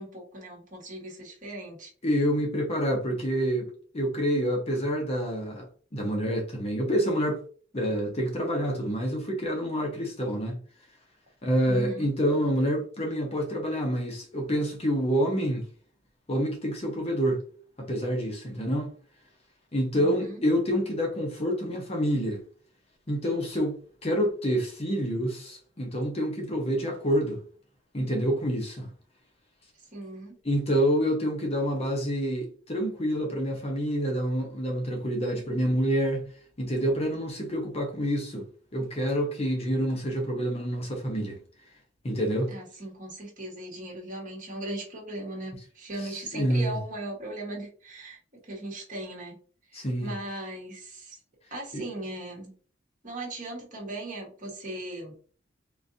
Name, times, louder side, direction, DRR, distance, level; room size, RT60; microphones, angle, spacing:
voice 1, 0.0-1.9 11.7-12.1 20.0-20.4 29.9-30.4 42.5-49.3 49.7-51.2 51.5-52.6 53.0-55.1, right 2 dB, 45° right, 1.3 m, -38 dB
voice 2, 2.0-5.7 5.9-7.4 7.7-10.6 11.4-15.7 16.3-17.4 17.8-18.9 19.7-22.4 23.1-27.4 27.9-28.9 30.4-36.3 36.6-38.5 38.7-41.4 42.0-42.5 46.0-46.8 49.7-50.1 51.7-51.8, equal, 35° left, 0.8 m, -27 dB
3.8 x 2.6 x 2.6 m
head